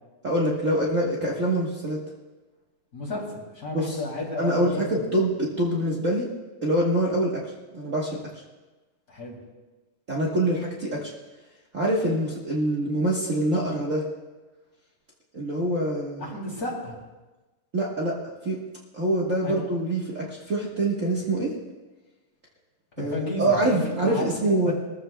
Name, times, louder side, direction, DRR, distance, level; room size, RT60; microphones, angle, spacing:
voice 1, 0.2-2.0 3.7-4.0 4.4-6.3 6.6-8.2 10.1-11.1 11.7-14.0 15.3-16.3 17.7-18.2 18.4-18.6 18.9-21.5 23.0-24.7, right 1 dB, 70° right, -5 dB, 0.7 m, -25 dB
voice 2, 2.9-5.1 9.1-9.4 16.2-16.9 19.4-19.6 23.0-24.3 24.6-24.7, left 1 dB, 25° left, -3 dB, 3.2 m, -33 dB
21.5 x 14.0 x 2.3 m, 1.2 s
omnidirectional pair, 3.9 m